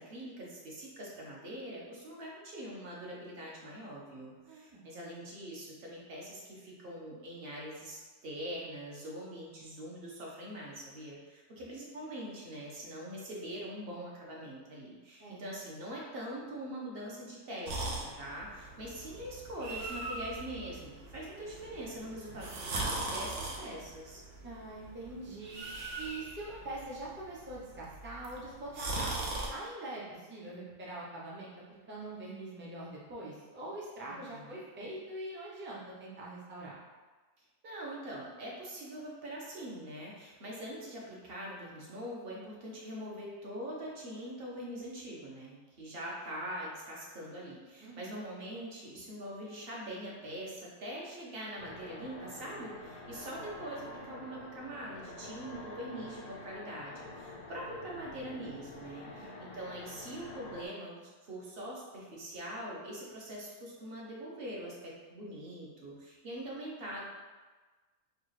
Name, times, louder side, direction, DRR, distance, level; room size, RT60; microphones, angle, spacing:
voice 1, 0.0-24.2 34.0-34.6 37.4-67.0, right 1 dB, 45° right, -3 dB, 0.9 m, -43 dB
voice 2, 4.5-4.8 15.2-15.4 24.4-25.6 26.0-31.5 31.9-36.8 47.8-48.2 59.0-59.4, right 2 dB, 15° right, -6 dB, 0.3 m, -44 dB
sound 1, 17.6-29.5, right 2 dB, 80° right, 1.2 m, -40 dB
sound 2, 51.6-60.7, left 2 dB, 90° left, 1.3 m, -47 dB
4.7 x 2.4 x 3.2 m, 1.3 s
omnidirectional pair, 1.6 m